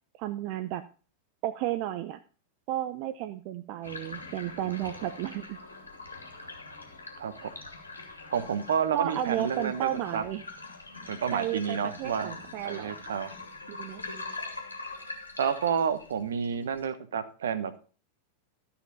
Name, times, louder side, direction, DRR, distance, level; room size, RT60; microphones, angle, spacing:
voice 1, 0.2-0.8 1.4-2.2 2.7-5.6 8.9-10.4 11.3-13.0 13.7-14.0, right 13 dB, 45° right, 10 dB, 0.6 m, -33 dB
sound 1, 3.8-16.8, left 3 dB, 80° left, 2.1 m, -43 dB
voice 2, 7.2-7.5 8.3-10.2 11.1-12.3 12.6-13.3 15.4-17.9, right 7 dB, 65° right, 13 dB, 1.0 m, -30 dB
13.5 x 5.8 x 5.4 m, 0.38 s
figure-of-eight pair, 90°, 0 cm